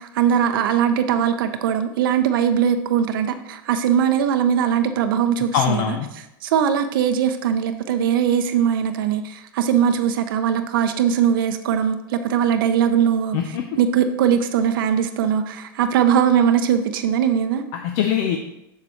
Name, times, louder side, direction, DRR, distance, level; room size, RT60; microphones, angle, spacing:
voice 1, 0.0-13.4 13.8-17.6, right 8 dB, 75° right, 8 dB, 0.6 m, -20 dB
voice 2, 5.5-6.1 13.3-13.6 17.7-18.4, left 9 dB, 60° left, 5 dB, 0.6 m, -22 dB
6.9 x 6.7 x 3.1 m, 0.85 s
supercardioid pair, 115°, 11 cm